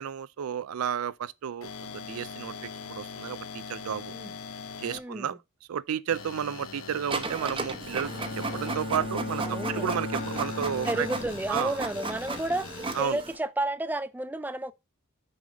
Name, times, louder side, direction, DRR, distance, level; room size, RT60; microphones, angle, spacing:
voice 1, 0.0-4.1 4.8-5.4 5.7-11.1 11.5-11.8 13.0-13.2, right 8 dB, 85° right, 0.4 m, -32 dB
sound 1, 1.6-5.0 6.1-8.8 10.1-13.0, left 5 dB, 75° left, 1.1 m, -42 dB
voice 2, 4.9-5.4 9.4-10.0 10.9-14.7, right 1 dB, 10° right, 0.4 m, -32 dB
Printer, 7.1-13.4, right 3 dB, 25° right, 0.9 m, -35 dB
Bowed string instrument, 7.9-12.0, left 2 dB, 50° left, 1.1 m, -36 dB
6.3 x 5.4 x 5.0 m
head